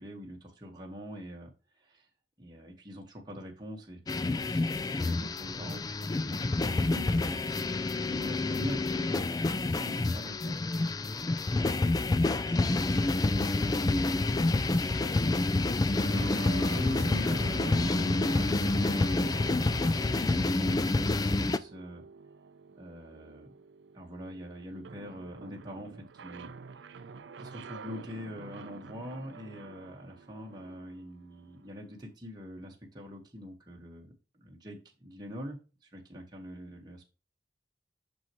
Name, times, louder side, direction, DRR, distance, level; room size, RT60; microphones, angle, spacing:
voice 1, 0.0-2.1 2.4-7.5 8.0-10.6 12.4-22.0 22.8-23.5 23.9-27.1 27.4-37.1, equal, 20° right, -1 dB, 1.2 m, -44 dB
sound 1, 4.1-21.6, left 2 dB, 20° left, 0.3 m, -28 dB
sound 2, 16.0-31.7, right 5 dB, 75° right, 0.5 m, -47 dB
6.4 x 6.1 x 2.9 m, 0.31 s
head